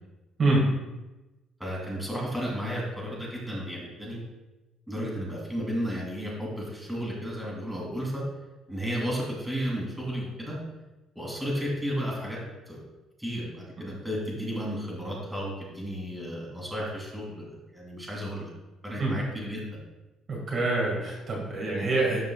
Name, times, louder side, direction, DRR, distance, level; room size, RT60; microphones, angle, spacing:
voice 1, 1.6-4.2 4.9-8.2 8.7-10.6 11.1-12.4 12.7-12.8 13.2-18.5 18.8-19.8, equal, 5° right, -4 dB, 2.6 m, -33 dB
voice 2, 20.3-22.2, right 2 dB, 40° right, -4 dB, 2.0 m, -25 dB
12.0 x 5.2 x 2.4 m, 1.1 s
cardioid pair, 120°, 0 cm